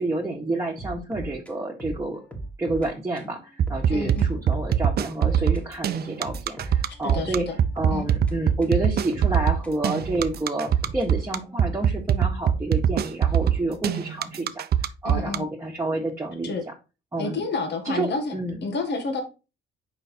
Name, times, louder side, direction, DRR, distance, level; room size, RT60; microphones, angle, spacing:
voice 1, 0.0-2.2 2.6-7.5 7.7-14.6 15.0-16.5 17.1-17.4 17.8-18.6, right 2 dB, 15° right, -3 dB, 1.6 m, -29 dB
sound 1, 0.8-2.9 3.2-3.3 3.7-5.6 5.9-8.8 9.1-11.7, right 2 dB, 5° left, 1.8 m, -38 dB
sound 2, 3.6-15.4, right 9 dB, 55° right, 0.6 m, -22 dB
voice 2, 3.9-4.3 7.0-7.5 7.9-8.1 15.0-15.5 16.4-16.6 17.2-18.3 18.6-19.2, left 3 dB, 60° left, 5 dB, 1.6 m, -29 dB
5.4 x 4.9 x 4.4 m, 0.30 s
cardioid pair, 90°, 20 cm